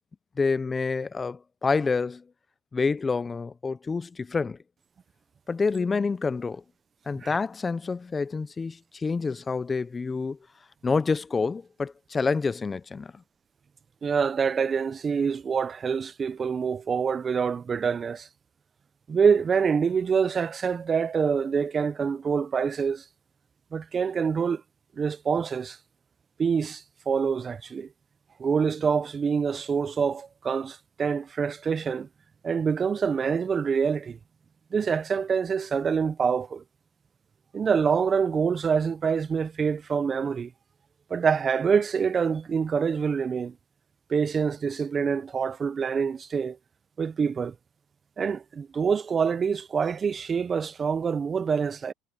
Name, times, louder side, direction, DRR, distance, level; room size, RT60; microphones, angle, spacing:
voice 1, 0.4-2.2 2.7-4.6 5.5-6.6 7.1-10.4 10.8-13.2, left 4 dB, 20° left, 0.7 m, -28 dB
voice 2, 14.0-18.3 19.1-23.0 23.7-24.6 25.0-25.8 26.4-27.9 28.4-32.1 32.4-34.2 34.7-36.6 37.5-40.5 41.1-43.5 44.1-46.6 47.0-47.5 48.2-51.9, right 6 dB, 30° right, 0.7 m, -26 dB
supercardioid pair, 100°, 0 cm